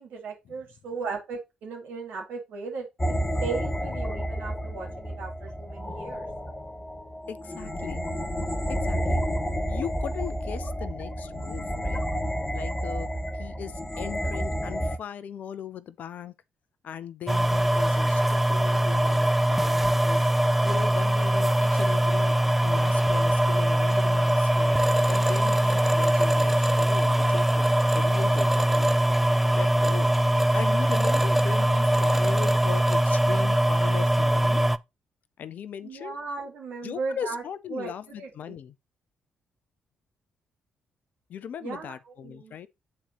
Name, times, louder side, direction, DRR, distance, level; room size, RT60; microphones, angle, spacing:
voice 1, 0.0-3.1 3.4-6.3 35.8-37.4 37.7-37.9 38.2-38.5 41.6-41.9 42.2-42.6, right 4 dB, 65° right, 2.5 m, -36 dB
sound 1, 3.0-15.0, equal, 15° left, 1.1 m, -30 dB
voice 2, 7.3-8.0 8.7-9.2 9.7-12.0 12.5-13.1 13.3-16.3 16.8-20.3 20.6-24.8 25.1-28.9 29.5-30.1 30.5-34.6 35.4-36.2 36.8-38.7 41.3-42.7, left 9 dB, 55° left, 0.6 m, -39 dB
sound 2, 17.3-34.8, right 1 dB, 5° right, 0.4 m, -22 dB
9.6 x 4.2 x 2.9 m
figure-of-eight pair, 40°, 3 cm